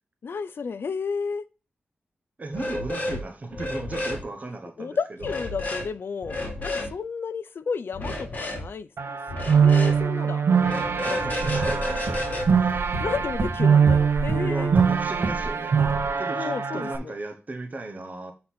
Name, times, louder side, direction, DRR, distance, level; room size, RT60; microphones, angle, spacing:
voice 1, 0.2-1.5 4.8-6.3 6.6-10.4 10.7-11.7 13.0-14.7 16.4-17.1, left 5 dB, 70° left, 0.5 m, -32 dB
voice 2, 2.4-5.3 11.0-12.3 12.6-12.8 14.3-15.8 16.2-18.3, right 2 dB, 40° right, 1.0 m, -36 dB
sound 1, 2.5-3.2 3.5-4.2 5.2-5.9 6.2-6.9 7.9-8.6 9.3-10.0 10.6-13.3, left 1 dB, 40° left, 2.0 m, -31 dB
sound 2, 9.0-17.0, right 6 dB, 85° right, 0.6 m, -23 dB
sound 3, 11.4-15.5 15.8-16.1, right 2 dB, 65° right, 1.5 m, -30 dB
7.7 x 3.8 x 4.1 m
wide cardioid pair, 130°, 4 cm